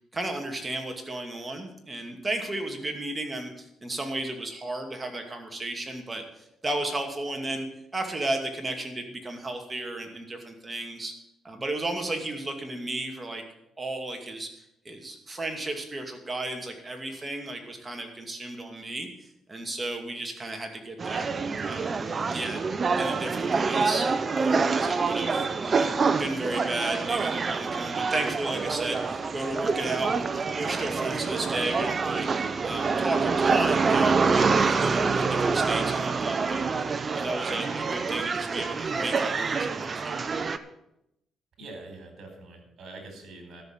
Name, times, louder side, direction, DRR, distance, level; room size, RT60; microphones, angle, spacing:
voice 1, 0.1-6.2 6.6-7.7 7.9-11.1 11.4-13.4 13.8-14.5 14.8-19.1 19.5-21.3 21.6-22.6 23.0-24.0 24.3-25.9 26.2-32.3 32.6-36.7 37.0-40.2, right 2 dB, 20° right, 4 dB, 2.4 m, -33 dB
sound 1, 21.0-40.6, right 4 dB, 40° right, 0.8 m, -26 dB
voice 2, 41.6-43.6, right 2 dB, 60° right, 4 dB, 4.4 m, -44 dB
13.0 x 6.7 x 8.0 m, 0.83 s
cardioid pair, 90°, 0 cm